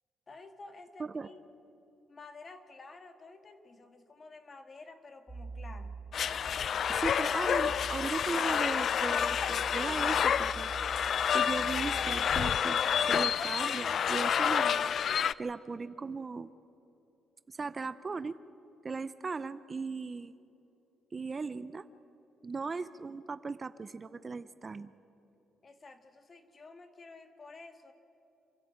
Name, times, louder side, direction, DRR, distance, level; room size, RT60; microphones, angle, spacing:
voice 1, 0.3-1.4 2.1-6.0 25.6-27.9, left 3 dB, 35° left, 7 dB, 1.9 m, -51 dB
sound 1, 5.3-12.3, right 4 dB, 10° right, 4.3 m, -46 dB
sound 2, 6.1-15.3, left 8 dB, 60° left, 0.4 m, -29 dB
voice 2, 6.9-12.8 13.1-14.9 15.4-16.5 17.5-18.4 18.8-20.4 21.1-21.9 22.4-24.9, right 4 dB, 30° right, 14 dB, 0.6 m, -38 dB
27.5 x 11.5 x 8.8 m, 3.0 s
cardioid pair, 90°, 0 cm